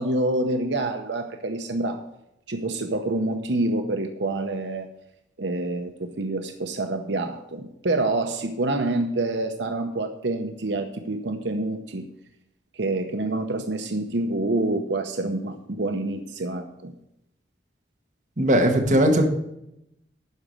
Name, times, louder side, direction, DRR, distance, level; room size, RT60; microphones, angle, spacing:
voice 1, 0.0-2.0 2.5-4.9 5.4-12.0 12.7-16.9, right 2 dB, 85° right, 6 dB, 0.9 m, -27 dB
voice 2, 18.4-19.2, right 1 dB, 45° right, 2 dB, 1.7 m, -18 dB
12.0 x 5.0 x 7.6 m, 0.81 s
head